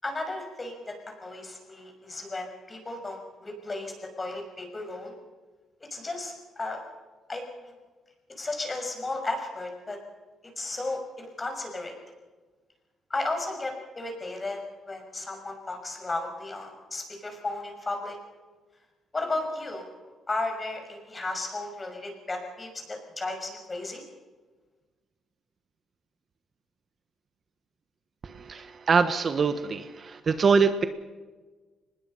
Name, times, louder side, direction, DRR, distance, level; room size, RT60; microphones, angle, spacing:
voice 1, 0.0-5.1 5.9-6.8 7.3-7.7 8.4-10.0 10.6-11.9 13.1-18.2 19.1-19.9 20.3-24.0, left 2 dB, 25° left, 3 dB, 6.3 m, -34 dB
voice 2, 28.2-30.8, right 5 dB, 45° right, 10 dB, 1.4 m, -24 dB
23.5 x 20.5 x 5.7 m, 1.3 s
cardioid pair, 90°, 0 cm